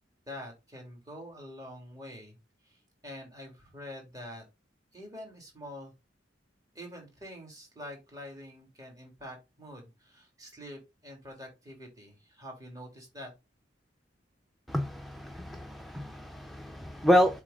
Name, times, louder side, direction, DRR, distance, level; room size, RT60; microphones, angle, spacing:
voice 1, 0.3-2.4 2.6-2.8 3.0-4.4 4.9-5.9 6.7-13.3, equal, 20° right, 3.1 m, -46 dB
voice 2, 14.7-17.4, equal, ahead, 0.6 m, -28 dB
7.4 x 3.5 x 5.2 m
head